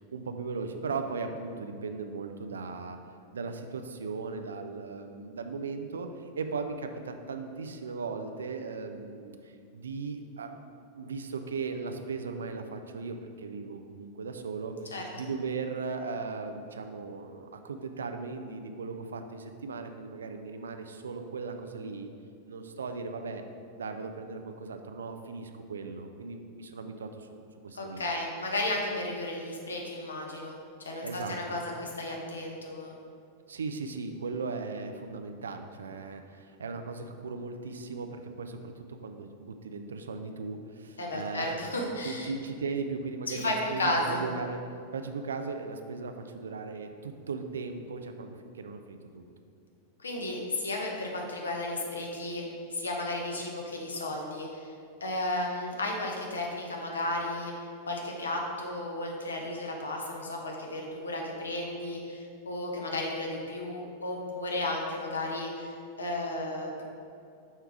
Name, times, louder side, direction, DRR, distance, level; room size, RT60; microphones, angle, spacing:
voice 1, 0.0-3.0 3.3-22.1 22.4-23.4 23.8-27.3 27.6-28.1 31.0-31.4 33.5-41.6 42.0-44.6 44.9-49.2, right 4 dB, 70° right, 6 dB, 0.4 m, -37 dB
voice 2, 27.7-30.5 30.8-32.9 41.0-42.3 43.3-44.2 50.0-52.4 52.7-54.7 55.0-66.8, left 1 dB, 75° left, 0 dB, 1.0 m, -33 dB
5.6 x 4.5 x 4.8 m, 2.4 s
figure-of-eight pair, 90°, 0 cm